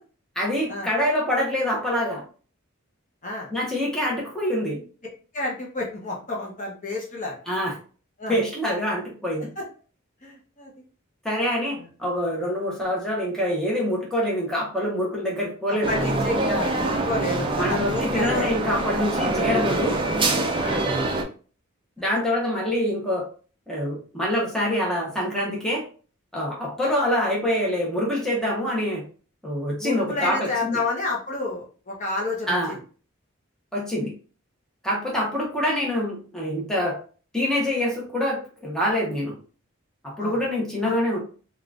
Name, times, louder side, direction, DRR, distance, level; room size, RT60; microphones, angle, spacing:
voice 1, 0.4-2.2 3.5-4.8 7.5-7.7 8.3-9.5 11.2-15.9 17.5-20.0 22.0-23.3 23.7-25.8 26.3-29.0 29.4-30.8 32.5-32.7 33.7-34.1 34.8-37.0 37.3-39.3 40.0-41.2, left 1 dB, 5° left, -4 dB, 0.8 m, -25 dB
voice 2, 5.3-7.4 8.2-8.4 9.6-9.7 10.2-10.7 11.8-11.9 15.9-18.5 20.6-20.8 29.8-32.8 40.2-40.4 40.8-40.9, left 2 dB, 35° left, -2 dB, 0.8 m, -30 dB
sound 1, 15.8-21.2, right 2 dB, 25° right, 0.4 m, -25 dB
3.6 x 2.4 x 2.4 m, 0.39 s
head